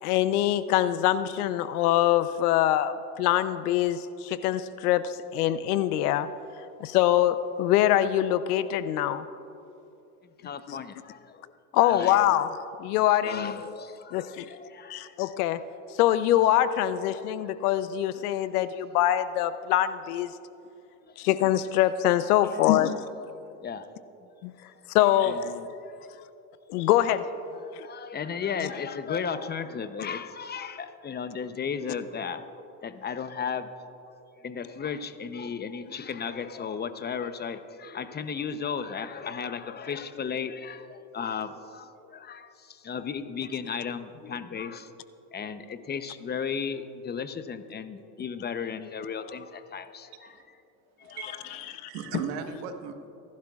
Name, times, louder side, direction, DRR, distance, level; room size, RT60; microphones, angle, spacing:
voice 1, 0.0-6.3 6.8-9.3 10.7-10.8 11.7-12.5 12.8-13.6 14.1-14.5 14.9-15.6 16.0-20.3 21.2-23.0 24.4-24.5 24.9-25.7 26.7-27.3 27.7-27.9 51.2-51.9, left 12 dB, 85° left, 13 dB, 0.7 m, -24 dB
voice 2, 10.2-11.5 11.8-12.2 13.2-15.1 17.4-17.5 21.0-21.3 22.4-22.6 23.6-24.3 24.7-24.9 25.2-25.4 25.9-26.1 27.5-32.5 32.8-33.9 34.4-44.9 45.3-50.4 51.0-51.5, left 6 dB, 20° left, 11 dB, 0.8 m, -35 dB
voice 3, 51.0-53.1, right 7 dB, 75° right, 6 dB, 1.4 m, -37 dB
26.5 x 12.0 x 2.4 m, 2.8 s
supercardioid pair, 95°, 44 cm